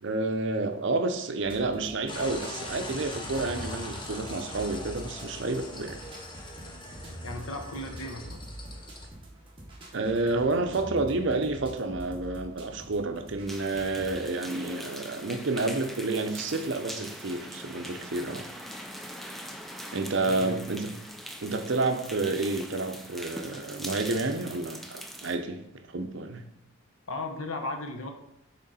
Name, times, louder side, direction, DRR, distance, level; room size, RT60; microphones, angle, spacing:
voice 1, 0.0-6.0 9.9-18.4 19.9-20.9 21.4-25.6 25.9-26.4, right 3 dB, 60° right, 6 dB, 0.6 m, -30 dB
sound 1, 1.4-14.3, right 1 dB, 25° right, 1.0 m, -45 dB
sound 2, 2.1-9.1, left 2 dB, 20° left, 0.7 m, -41 dB
voice 2, 7.2-8.4 20.3-20.8 27.1-28.1, left 2 dB, 80° left, 4 dB, 0.8 m, -36 dB
sound 3, 13.5-25.4, equal, ahead, 0.3 m, -42 dB
6.2 x 3.7 x 4.2 m, 0.84 s
head